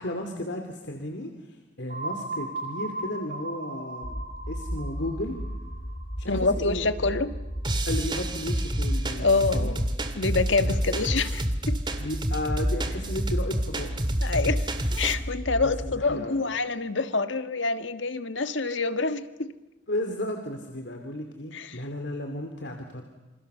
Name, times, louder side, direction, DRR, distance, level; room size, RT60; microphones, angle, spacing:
voice 1, 0.0-4.2 4.5-5.4 6.2-6.9 7.9-9.8 10.6-10.8 12.0-13.9 15.6-16.4 19.9-23.0, left 1 dB, 65° left, 4 dB, 2.8 m, -34 dB
sound 1, 1.9-7.6, right 2 dB, 45° right, 3.5 m, -38 dB
sound 2, 4.0-16.0, equal, 50° left, 5.6 m, -35 dB
voice 2, 6.3-7.3 9.2-9.8 10.1-11.8 14.2-14.7 15.0-19.5 21.5-21.8, left 3 dB, 85° left, 10 dB, 1.6 m, -26 dB
sound 3, 7.6-15.1, right 1 dB, 25° right, 2.2 m, -28 dB
28.5 x 26.5 x 6.9 m, 1.1 s
head